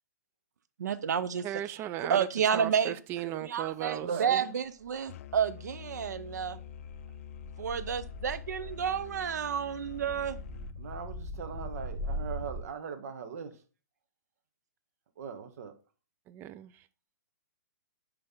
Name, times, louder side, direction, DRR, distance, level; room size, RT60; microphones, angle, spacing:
voice 1, 0.8-1.4 2.0-3.0 3.3-6.6 7.6-10.4, right 7 dB, 75° right, 0.6 m, -30 dB
voice 2, 1.4-2.3 2.5-4.1 16.3-16.9, right 13 dB, 25° right, 0.3 m, -36 dB
voice 3, 4.0-4.5 10.8-13.5 15.2-15.7, right 6 dB, 60° right, 1.2 m, -39 dB
sound 1, 4.9-12.6, equal, ahead, 2.2 m, -41 dB
Musical instrument, 5.1-10.7, left 10 dB, 50° left, 0.4 m, -47 dB
9.6 x 3.4 x 3.7 m
hypercardioid pair, 135°, 9 cm